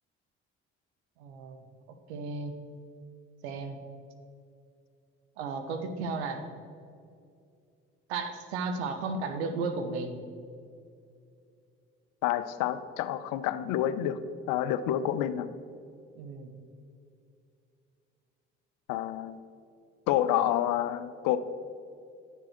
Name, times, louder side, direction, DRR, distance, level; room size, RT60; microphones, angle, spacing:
voice 1, 1.2-1.6 2.1-2.6 3.4-3.8 5.4-6.4 8.1-10.2 16.1-16.5, right 4 dB, 90° right, 7 dB, 0.9 m, -34 dB
voice 2, 12.2-14.2 14.5-15.5 18.9-19.4 20.1-21.4, left 12 dB, 75° left, 13 dB, 0.6 m, -28 dB
11.0 x 7.0 x 4.4 m, 2.5 s
hypercardioid pair, 55°, 32 cm